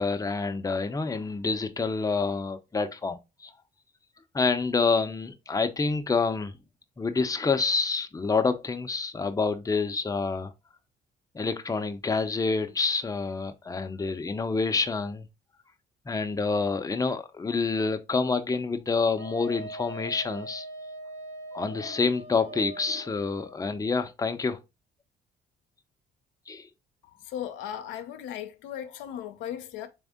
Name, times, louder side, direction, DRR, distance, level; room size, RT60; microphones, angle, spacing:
voice 1, 0.0-3.5 4.3-6.5 7.0-10.5 11.3-15.3 16.1-20.7 21.5-24.6 26.5-26.7, left 4 dB, 20° left, 0.6 m, -27 dB
Wind instrument woodwind instrument, 19.2-23.6, right 2 dB, 70° right, 2.2 m, -41 dB
voice 2, 27.3-29.9, left 10 dB, 80° left, 0.6 m, -37 dB
3.6 x 3.4 x 3.5 m
supercardioid pair, 65°, 19 cm